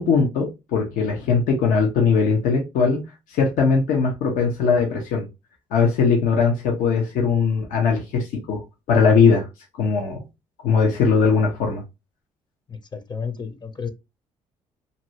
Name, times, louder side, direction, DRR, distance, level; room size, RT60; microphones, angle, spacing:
voice 1, 0.0-3.1 3.3-5.3 5.7-8.6 8.9-9.4 9.8-10.2 10.6-11.8, left 5 dB, 80° left, 0.9 m, -20 dB
voice 2, 12.7-13.9, left 6 dB, 30° left, 0.8 m, -32 dB
2.8 x 2.7 x 2.9 m
supercardioid pair, 70°, 14 cm